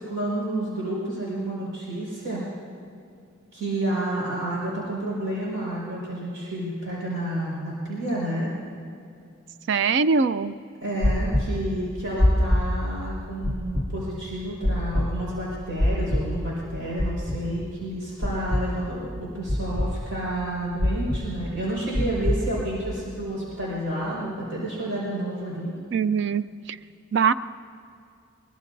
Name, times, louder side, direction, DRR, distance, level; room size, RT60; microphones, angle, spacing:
voice 1, 0.0-2.4 3.5-8.5 10.8-25.7, right 1 dB, 85° right, -6 dB, 5.0 m, -30 dB
voice 2, 9.7-10.5 25.9-26.8 27.1-27.3, right 5 dB, 60° right, 13 dB, 0.4 m, -22 dB
sound 1, 11.0-11.4 12.2-12.6 13.4-13.8 14.6-15.0 15.8-16.2 17.0-17.4 18.2-18.6 19.5-19.9 20.8-21.2 21.9-22.4, left 1 dB, 35° right, 2.3 m, -21 dB
22.5 x 22.5 x 2.7 m, 2.5 s
head